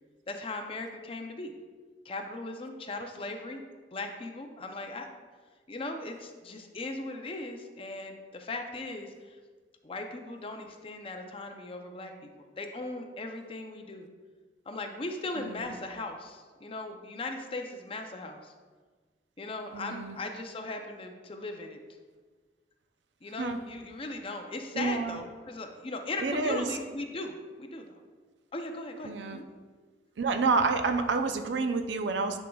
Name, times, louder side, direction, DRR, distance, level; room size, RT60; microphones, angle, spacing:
voice 1, 0.3-1.5 2.0-3.6 3.9-5.1 5.7-9.4 9.8-14.1 14.7-18.5 19.4-21.8 23.2-28.0 28.5-29.5, left 2 dB, 30° left, 4 dB, 0.6 m, -38 dB
voice 2, 19.7-20.2 23.4-23.6 24.7-25.2 26.2-26.7 29.0-29.4 30.2-32.4, right 4 dB, 80° right, 7 dB, 0.5 m, -29 dB
9.9 x 5.2 x 2.3 m, 1.4 s
head